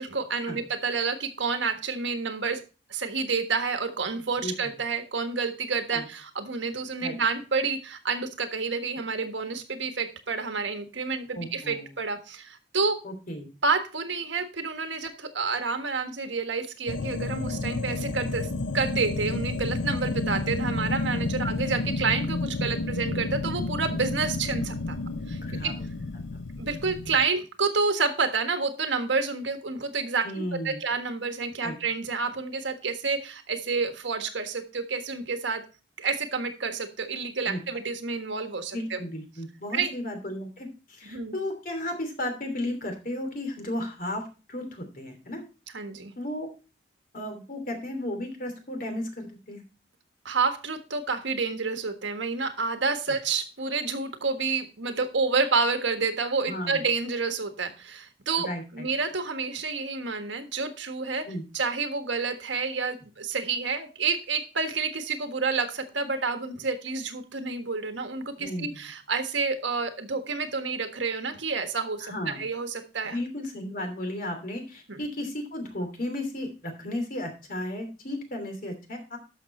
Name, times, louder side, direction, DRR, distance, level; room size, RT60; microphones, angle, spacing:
voice 1, 0.0-2.6 2.9-13.0 13.6-18.5 18.7-25.0 25.3-25.7 26.6-35.6 36.0-39.0 39.7-39.9 41.1-41.3 45.7-46.1 50.2-61.3 61.5-73.2 74.9-75.0, right 4 dB, 85° right, 7 dB, 1.5 m, -29 dB
voice 2, 11.3-11.9 13.0-13.5 21.4-21.5 25.4-25.8 26.3-26.4 30.2-30.8 31.6-31.8 37.4-37.6 38.7-45.4 46.2-46.5 47.1-49.6 56.5-56.9 58.4-58.9 61.2-61.4 68.4-68.8 72.0-72.4 73.0-79.2, left 1 dB, 50° left, 5 dB, 2.9 m, -34 dB
sound 1, 16.9-27.3, left 2 dB, 90° left, 0.7 m, -31 dB
12.5 x 6.2 x 4.3 m, 0.33 s
head